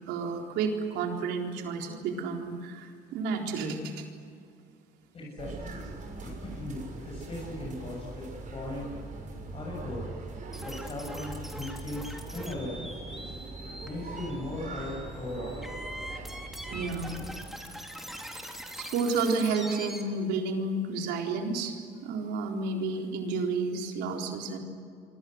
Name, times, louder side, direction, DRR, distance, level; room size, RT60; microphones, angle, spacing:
voice 1, 0.1-4.1 16.7-17.2 18.8-24.6, right 4 dB, 90° right, 2 dB, 4.0 m, -31 dB
voice 2, 5.1-5.8 6.2-8.9 9.5-10.1 10.6-13.0 13.9-15.6, left 2 dB, 35° left, -3 dB, 7.5 m, -38 dB
sound 1, 5.4-17.5, right 3 dB, 50° right, 6.4 m, -41 dB
sound 2, 10.5-20.0, equal, ahead, 3.4 m, -43 dB
27.5 x 24.5 x 8.0 m, 2.4 s
cardioid pair, 110°, 17 cm